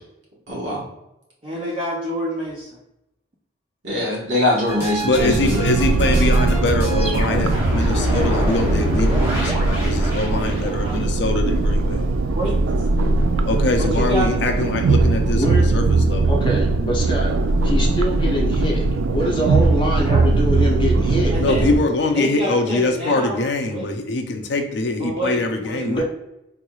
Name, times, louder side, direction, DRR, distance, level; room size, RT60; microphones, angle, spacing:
voice 1, 0.5-0.8 3.8-5.6, left 1 dB, 70° right, -5 dB, 1.4 m, -22 dB
voice 2, 1.4-2.7 10.2-11.0 12.4-12.6 13.8-14.4 20.1-20.3 21.3-21.7 22.0-23.4 23.7-23.9 25.0-26.0, right 1 dB, 30° right, -5 dB, 0.5 m, -28 dB
sound 1, 4.7-11.0, equal, 10° right, 0.9 m, -27 dB
voice 3, 5.0-12.1 13.5-16.4 21.4-26.0, left 2 dB, 60° left, 4 dB, 0.5 m, -23 dB
sound 2, 5.2-21.8, right 3 dB, 90° right, 0.3 m, -20 dB
voice 4, 15.3-15.7 16.3-17.3 17.6-21.4 25.8-26.0, equal, 25° left, -2 dB, 0.7 m, -24 dB
3.7 x 3.0 x 2.3 m, 0.89 s
head